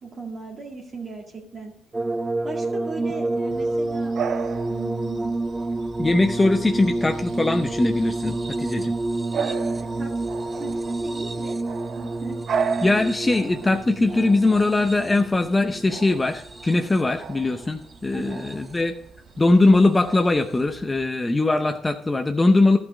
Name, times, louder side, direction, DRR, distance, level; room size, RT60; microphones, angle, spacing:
voice 1, 0.0-1.7 2.4-4.1 4.7-5.3 9.3-11.6 11.9-12.4 18.1-18.4, right 3 dB, 45° right, -2 dB, 2.0 m, -37 dB
sound 1, 1.9-17.2 18.1-18.8 20.2-20.3, right 2 dB, 20° right, 0.7 m, -29 dB
Bark / Bird vocalization bird call bird song, 3.5-21.1, right 6 dB, 60° right, 0.7 m, -36 dB
voice 2, 6.0-8.9 12.8-18.9 19.4-22.8, left 2 dB, 20° left, 6 dB, 0.7 m, -21 dB
12.0 x 5.9 x 5.2 m, 0.69 s
cardioid pair, 90°, 0 cm